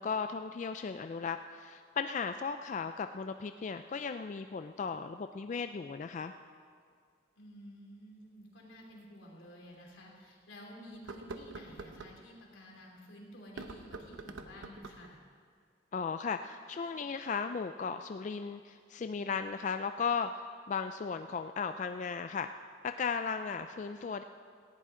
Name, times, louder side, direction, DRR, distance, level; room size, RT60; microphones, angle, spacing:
voice 1, 0.0-6.3 15.9-22.5 22.8-24.2, left 5 dB, 40° left, 8 dB, 0.3 m, -36 dB
voice 2, 7.4-15.2, equal, 80° left, -2 dB, 3.1 m, -52 dB
sound 1, 7.7-7.8 9.0-9.1 9.7-9.8 10.9-12.2 13.4-15.1, right 3 dB, 85° right, 0.9 m, -46 dB
18.0 x 15.0 x 3.7 m, 2.1 s
head